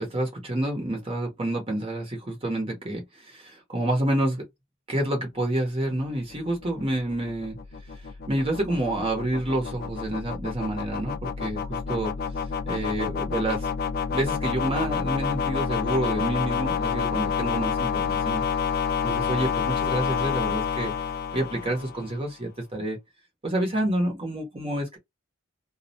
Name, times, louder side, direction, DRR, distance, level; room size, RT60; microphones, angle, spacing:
voice 1, 0.0-4.4 4.9-7.6 7.9-8.0 8.3-12.1 12.7-13.7 14.1-18.4 19.0-20.9 21.3-23.0 23.4-25.0, right 1 dB, 25° right, 0.8 m, -28 dB
sound 1, 6.0-22.2, left 6 dB, 45° left, 0.3 m, -29 dB
2.2 x 2.1 x 2.7 m
head